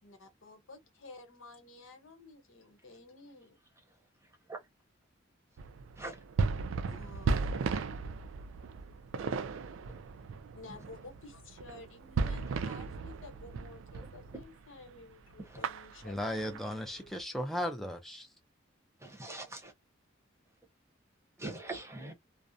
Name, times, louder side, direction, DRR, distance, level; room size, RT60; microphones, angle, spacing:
voice 1, 0.0-3.6 6.9-7.6 10.5-17.2, left 3 dB, 90° left, 1.0 m, -52 dB
sound 1, 5.6-14.5 14.8-15.0 15.3-17.2, right 4 dB, 80° right, 0.3 m, -36 dB
voice 2, 16.0-18.3, equal, ahead, 0.3 m, -36 dB
voice 3, 19.0-19.7 21.4-22.1, right 2 dB, 15° right, 0.7 m, -42 dB
2.4 x 2.0 x 2.5 m
head